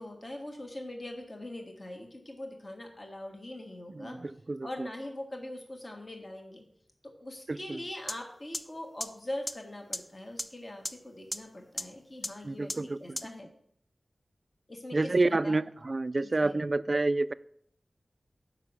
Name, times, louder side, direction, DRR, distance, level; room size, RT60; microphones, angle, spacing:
voice 1, 0.0-4.1 4.6-6.6 7.0-12.7 13.0-13.5 14.7-15.1 15.4-15.6 16.2-16.6, left 1 dB, 40° left, 1.5 m, -42 dB
voice 2, 4.0-4.9 7.5-7.8 12.4-13.2 14.9-17.3, right 2 dB, 45° right, 0.3 m, -29 dB
sound 1, 8.1-8.2 8.5-8.6 9.0-9.1 9.5-9.6 9.9-10.0 10.4-10.5 10.9-11.0 11.3-11.4 11.8-11.9 12.2-12.3 12.7-12.8 13.2-13.3, equal, 10° left, 0.5 m, -32 dB
7.3 x 5.3 x 6.2 m
wide cardioid pair, 85°, 0 cm